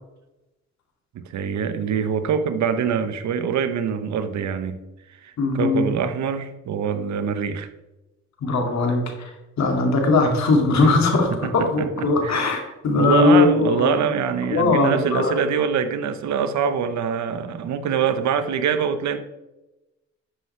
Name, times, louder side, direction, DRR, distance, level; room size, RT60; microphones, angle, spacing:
voice 1, 1.1-4.8 5.1-7.7 10.8-12.5 12.9-19.2, right 7 dB, 65° right, 10 dB, 1.0 m, -24 dB
voice 2, 5.4-5.8 8.4-14.0 14.4-15.3, left 3 dB, 65° left, 3 dB, 2.3 m, -20 dB
11.5 x 7.6 x 3.3 m, 1.0 s
cardioid pair, 90°, 30 cm